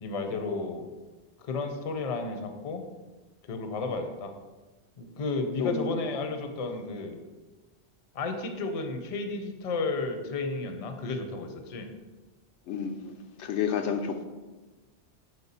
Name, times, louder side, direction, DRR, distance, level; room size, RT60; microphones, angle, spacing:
voice 1, 0.0-0.9 1.4-2.8 3.4-4.3 5.0-7.2 8.1-11.9, left 3 dB, 40° left, 6 dB, 0.6 m, -33 dB
voice 2, 5.6-5.9 12.7-13.1 13.4-14.2, left 6 dB, 85° left, 6 dB, 0.9 m, -30 dB
6.8 x 4.3 x 4.2 m, 1.2 s
omnidirectional pair, 1.2 m